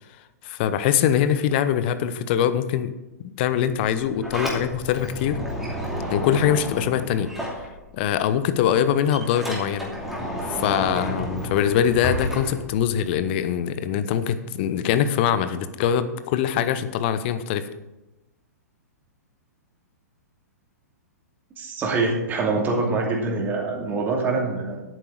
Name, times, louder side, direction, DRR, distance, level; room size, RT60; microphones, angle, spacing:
voice 1, 0.4-2.9 3.4-5.4 6.1-7.3 7.9-9.9 10.5-17.7, left 9 dB, 40° left, 12 dB, 0.8 m, -23 dB
Sliding door, 4.0-8.2 8.5-13.2, equal, ahead, 2.7 m, -31 dB
voice 2, 21.6-24.8, right 3 dB, 20° right, -1 dB, 2.5 m, -24 dB
10.5 x 9.0 x 4.7 m, 0.98 s
figure-of-eight pair, 110°, 9 cm